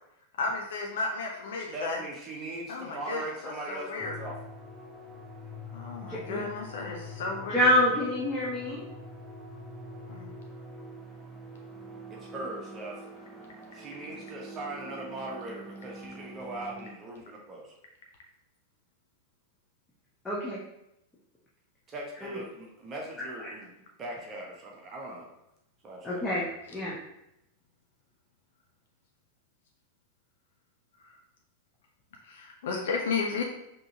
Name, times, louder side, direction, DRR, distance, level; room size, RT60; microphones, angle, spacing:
voice 1, 0.4-2.0 2.7-4.1 5.7-7.7 10.1-10.3 32.2-33.4, left 4 dB, 60° left, 1 dB, 0.6 m, -33 dB
voice 2, 1.7-4.4 12.1-13.1 13.7-17.7 21.9-23.7 24.0-25.3 25.8-26.2, right 1 dB, 25° right, -1 dB, 1.0 m, -40 dB
sound 1, 4.0-16.9, equal, 10° right, 0.7 m, -45 dB
voice 3, 6.1-6.5 7.5-8.8 20.2-20.6 22.2-22.4 23.4-23.5 26.0-26.4 26.7-26.9, left 1 dB, 10° left, -7 dB, 1.0 m, -27 dB
5.2 x 2.9 x 2.7 m, 0.83 s
figure-of-eight pair, 90°, 0 cm